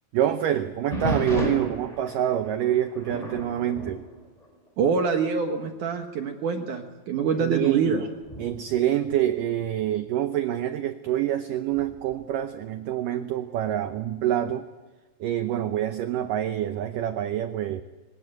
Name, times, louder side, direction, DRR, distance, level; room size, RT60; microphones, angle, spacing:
voice 1, 0.1-4.1 7.4-8.0 8.4-14.7 15.2-17.8, right 11 dB, 85° right, 9 dB, 1.9 m, -26 dB
sound 1, 0.9-5.0 5.4-5.7 6.3-6.4 7.2-9.9 11.7-12.2, equal, 10° left, 4.5 m, -34 dB
voice 2, 4.8-8.0, right 6 dB, 65° right, 5 dB, 2.2 m, -25 dB
24.0 x 19.5 x 7.8 m, 1.3 s
omnidirectional pair, 5.0 m